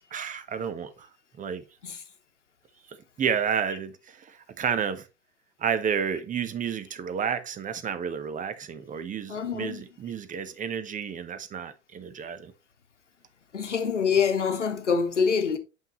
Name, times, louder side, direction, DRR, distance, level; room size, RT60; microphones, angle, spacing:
voice 1, 0.1-1.1 1.4-1.6 3.2-5.0 5.6-12.5, right 7 dB, 20° right, 0.8 m, -31 dB
voice 2, 9.3-9.8 13.5-15.6, left 6 dB, 85° left, 1.0 m, -25 dB
7.4 x 5.6 x 3.0 m
figure-of-eight pair, 80°, 35 cm